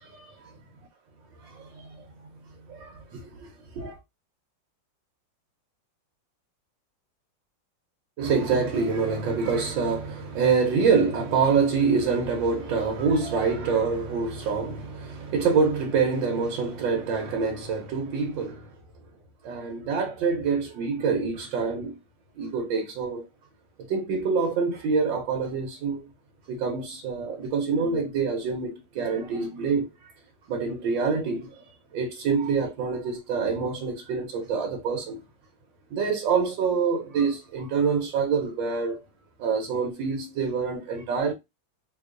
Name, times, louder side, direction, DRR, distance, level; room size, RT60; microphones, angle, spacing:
voice 1, 0.0-0.5 1.4-2.1 2.7-4.0 8.2-18.7 19.4-22.0 22.4-23.2 23.8-26.0 26.5-30.1 30.5-35.2 35.9-39.0 39.4-41.3, right 5 dB, 90° right, 1.5 m, -26 dB
3.7 x 2.9 x 2.4 m
omnidirectional pair, 2.0 m